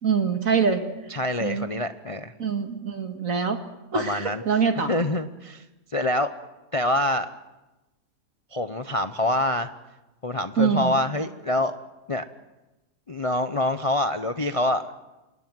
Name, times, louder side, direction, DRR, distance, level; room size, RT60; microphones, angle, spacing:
voice 1, 0.0-0.8 1.4-1.7 2.4-3.6 3.9-4.9 10.6-10.9, right 6 dB, 55° right, 6 dB, 2.3 m, -24 dB
voice 2, 1.1-2.3 3.9-5.6 5.9-6.3 6.7-7.3 8.5-9.7 10.2-11.8 12.1-12.2 13.1-14.8, left 1 dB, 30° left, 9 dB, 0.6 m, -26 dB
27.5 x 20.0 x 7.6 m, 1.0 s
omnidirectional pair, 1.7 m